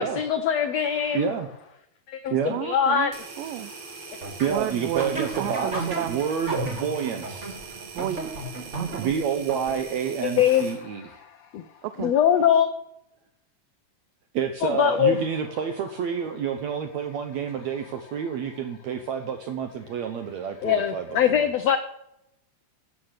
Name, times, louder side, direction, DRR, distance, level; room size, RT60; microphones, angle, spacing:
voice 1, 0.0-1.3 2.1-3.1 10.2-10.6 11.5-11.6 12.0-12.7 14.6-15.2 20.6-21.8, left 9 dB, 75° left, 8 dB, 1.5 m, -22 dB
voice 2, 1.1-1.5 2.3-2.6 4.4-7.6 9.0-11.2 14.4-21.5, right 7 dB, 70° right, 6 dB, 1.8 m, -29 dB
voice 3, 2.5-3.1 3.4-3.7 4.5-6.1 7.9-9.1 11.8-12.1, right 13 dB, 85° right, 10 dB, 2.3 m, -32 dB
sound 1, 3.1-10.8, right 5 dB, 50° right, 2.8 m, -42 dB
sound 2, 4.2-10.1, right 2 dB, 25° right, 1.8 m, -34 dB
13.0 x 8.4 x 6.5 m, 0.81 s
omnidirectional pair, 3.9 m